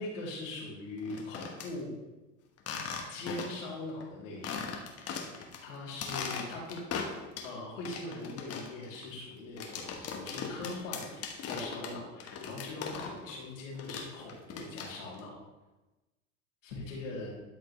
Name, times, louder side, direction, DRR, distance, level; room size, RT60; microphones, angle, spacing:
voice 1, 0.0-1.9 3.1-4.7 5.6-6.8 7.4-15.4 16.6-17.3, left 2 dB, 85° left, -4 dB, 3.1 m, -41 dB
sound 1, 1.0-1.7 2.6-3.7 4.0-4.1 4.4-5.6 5.9-7.5 7.9-13.3 13.6-15.2, left 6 dB, 40° left, 1.3 m, -39 dB
12.5 x 5.1 x 3.2 m, 1.1 s
hypercardioid pair, 95°, 38 cm